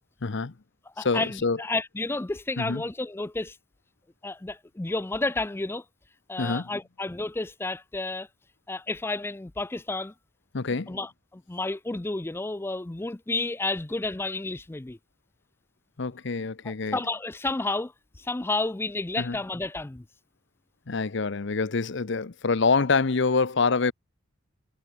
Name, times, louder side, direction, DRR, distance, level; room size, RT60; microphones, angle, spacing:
voice 1, 0.2-0.5 1.0-1.6 2.6-2.8 6.4-6.7 10.5-11.0 16.0-17.0 19.2-19.4 20.9-23.9, left 4 dB, 65° left, 0.8 m, -26 dB
voice 2, 1.0-3.6 4.2-5.8 6.3-8.3 8.7-10.1 10.9-15.0 16.6-17.9 18.2-20.0, left 2 dB, 10° left, 0.4 m, -31 dB
head